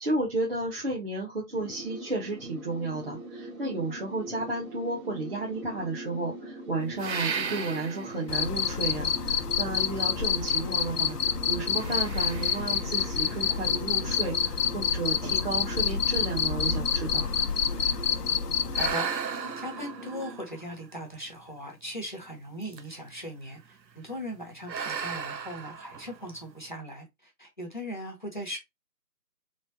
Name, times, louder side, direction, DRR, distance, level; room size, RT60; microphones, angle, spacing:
voice 1, 0.0-17.3, right 2 dB, 35° right, 1.0 m, -33 dB
sound 1, 1.5-20.4, right 1 dB, 50° right, 1.4 m, -42 dB
sound 2, 7.0-8.3 8.9-9.0 10.4-11.2 11.7-14.1 14.8-14.9 15.4-15.5 15.8-18.1 18.7-21.4 22.6-23.1 23.4-23.8 24.6-26.5, right 6 dB, 85° right, 0.7 m, -37 dB
Cricket, 8.3-18.9, left 7 dB, 65° left, 0.6 m, -28 dB
voice 2, 18.8-19.1 19.6-28.6, equal, 30° left, 0.7 m, -39 dB
4.2 x 3.2 x 2.6 m
figure-of-eight pair, 155°, 50 cm